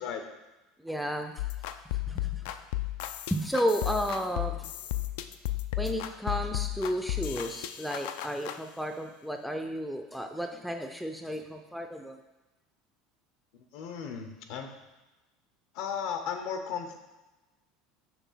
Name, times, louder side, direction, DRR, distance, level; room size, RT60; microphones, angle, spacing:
voice 1, 0.8-1.3 2.1-2.4 3.3-4.7 5.8-12.2, equal, ahead, 5 dB, 0.4 m, -32 dB
sound 1, 1.4-8.6, left 15 dB, 80° left, 0.3 m, -34 dB
voice 2, 13.7-14.7 15.7-17.0, left 7 dB, 65° left, 6 dB, 0.8 m, -35 dB
6.0 x 3.3 x 5.6 m, 1.1 s
cardioid pair, 150°, 0 cm